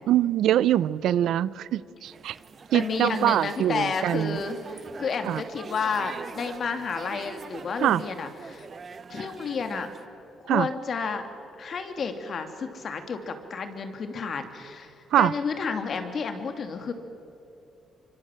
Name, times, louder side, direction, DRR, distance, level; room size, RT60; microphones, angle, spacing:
voice 1, 0.1-2.3 2.7-4.4 5.2-5.4 7.8-8.0 10.5-10.7 15.1-15.3, right 12 dB, 80° right, 18 dB, 0.6 m, -23 dB
sound 1, 2.0-10.1, right 5 dB, 45° right, 1.0 m, -43 dB
voice 2, 2.7-8.7 9.1-9.9 10.4-11.2 11.6-16.9, left 5 dB, 50° left, 7 dB, 2.8 m, -31 dB
25.0 x 25.0 x 7.7 m, 2.8 s
cardioid pair, 90°, 0 cm